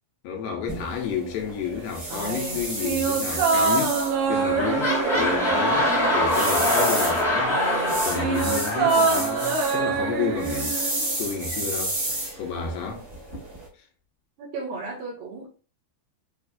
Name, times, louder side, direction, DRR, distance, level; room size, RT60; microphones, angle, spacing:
voice 1, 0.2-4.0 4.3-10.8 11.2-13.0, left 6 dB, 80° left, 2.5 m, -31 dB
sound 1, 0.7-13.7, right 1 dB, 55° right, 1.0 m, -32 dB
sound 2, 2.1-6.9 7.1-11.5 11.7-11.8, right 5 dB, 90° right, 2.9 m, -26 dB
sound 3, 3.9-4.0 4.2-10.1 10.8-10.9, left 1 dB, 5° left, 0.4 m, -24 dB
voice 2, 14.4-15.5, right 3 dB, 70° right, 3.0 m, -35 dB
7.0 x 2.5 x 2.3 m
omnidirectional pair, 4.5 m